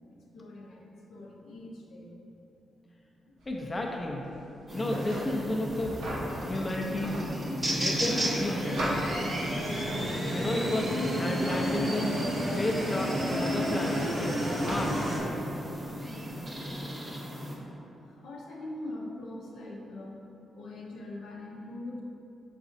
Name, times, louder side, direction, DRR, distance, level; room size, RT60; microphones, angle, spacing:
voice 1, 0.3-2.1 2.8-2.9 3.3-3.4 18.0-20.3 20.5-22.0, left 2 dB, 80° left, -3 dB, 0.6 m, -42 dB
sound 1, 3.4-16.8, equal, 90° right, 0.9 m, -41 dB
voice 2, 3.5-4.3 4.7-6.0 6.5-7.2 7.7-9.0 10.3-12.2 12.6-15.1, left 1 dB, 30° left, 0 dB, 0.4 m, -32 dB
sound 2, 4.7-17.6, equal, 30° right, 0.8 m, -36 dB
sound 3, 7.8-15.2, equal, 65° right, 1.1 m, -32 dB
4.0 x 3.8 x 2.6 m, 2.8 s
cardioid pair, 65°, 0 cm